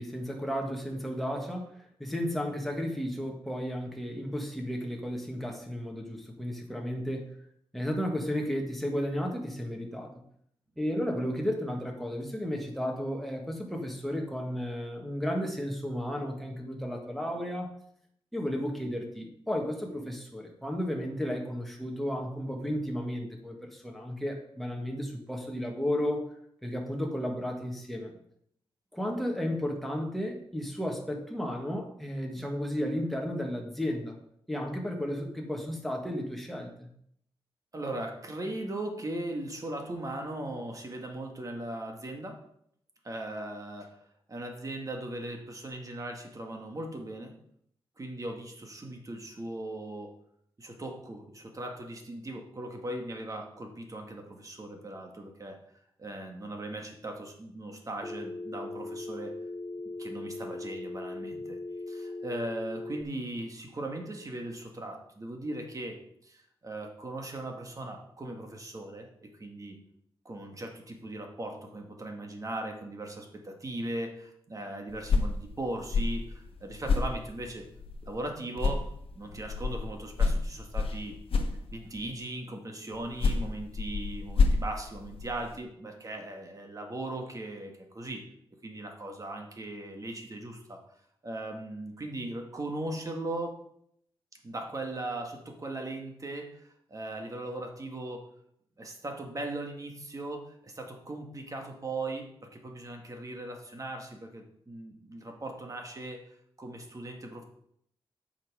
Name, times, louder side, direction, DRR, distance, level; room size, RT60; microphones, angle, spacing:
voice 1, 0.0-7.3 7.7-10.1 10.8-17.7 18.3-26.3 26.6-28.1 28.9-34.1 34.5-36.9, equal, ahead, 1 dB, 1.8 m, -33 dB
voice 2, 37.7-42.4 43.0-44.0 44.3-47.3 48.0-50.1 50.6-55.6 56.0-59.3 60.0-61.6 61.9-69.8 70.2-77.7 78.0-78.9 79.1-81.2 81.7-88.2 88.6-90.8 91.2-93.6 94.4-98.2 98.8-106.2 106.6-107.4, right 1 dB, 35° right, 3 dB, 1.8 m, -38 dB
Telephone, 58.0-63.0, left 2 dB, 20° left, 0.5 m, -39 dB
sound 1, 74.9-78.3 78.6-82.1 82.9-85.6, left 4 dB, 70° left, 1.1 m, -30 dB
8.5 x 5.9 x 4.9 m, 0.69 s
wide cardioid pair, 90°, 10 cm